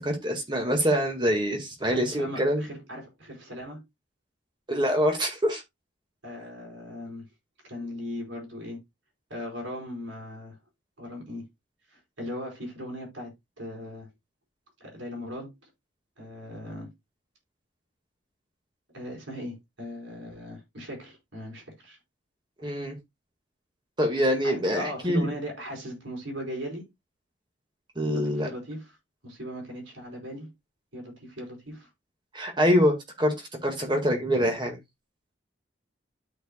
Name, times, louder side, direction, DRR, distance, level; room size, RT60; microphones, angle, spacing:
voice 1, 0.0-2.6 4.7-5.6 22.6-23.0 24.0-25.3 28.0-28.5 32.3-34.8, equal, 25° right, 1.8 m, -25 dB
voice 2, 2.0-3.8 6.2-7.3 7.6-8.8 9.3-10.6 11.0-11.4 11.9-14.1 14.8-15.7 16.2-16.9 18.9-22.0 24.4-26.9 28.1-28.9 29.2-30.5 30.9-31.9, equal, 75° right, 4.5 m, -38 dB
13.0 x 4.6 x 2.3 m
head